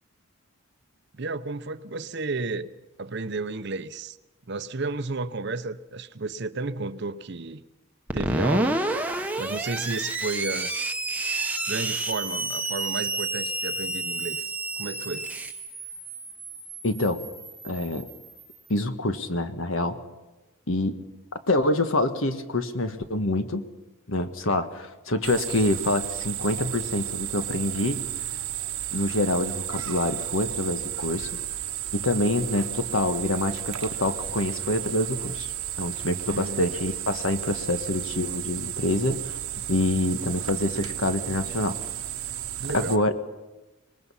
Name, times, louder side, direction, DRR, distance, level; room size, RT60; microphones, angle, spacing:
voice 1, 1.1-2.7 3.0-4.2 4.5-7.6 8.1-8.8 9.4-10.7 11.7-15.3 36.3-36.7 42.6-43.1, right 3 dB, 50° right, 0.7 m, -32 dB
Screech, 8.1-18.5, right 2 dB, 5° right, 0.9 m, -30 dB
voice 2, 16.8-17.2 17.6-18.1 18.7-20.0 20.7-21.0 21.5-23.6 24.1-28.0 28.9-31.3 31.9-35.5 35.8-39.4 39.7-41.8 42.7-43.1, left 1 dB, 65° left, 1.5 m, -26 dB
sound 1, 25.2-43.0, right 12 dB, 80° right, 1.1 m, -33 dB
25.0 x 20.0 x 5.7 m
head